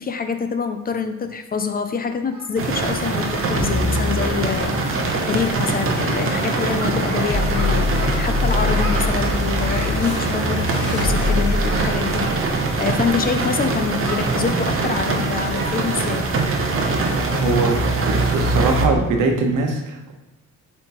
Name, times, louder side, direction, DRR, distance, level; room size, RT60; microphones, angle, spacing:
voice 1, 0.0-16.4, left 6 dB, 30° left, 8 dB, 0.4 m, -26 dB
Singing, 1.5-1.6 2.3-3.5 3.8-4.0 4.3-4.4 4.7-5.1 5.3-5.6 5.8-6.7 7.0-8.3 8.8-10.0 10.7-11.3 11.6-12.0 12.4-15.1 15.5-15.7 16.1-16.3 16.7-16.8 17.3-17.5, right 3 dB, 65° right, 1.5 m, -36 dB
sound 1, 2.6-18.9, right 3 dB, 45° right, 0.8 m, -23 dB
sound 2, 3.6-14.3, left 3 dB, 50° left, 1.1 m, -25 dB
voice 2, 17.3-17.8 18.1-20.1, right 3 dB, 85° right, 3 dB, 1.0 m, -21 dB
7.4 x 4.4 x 3.0 m, 0.98 s
wide cardioid pair, 160°, 31 cm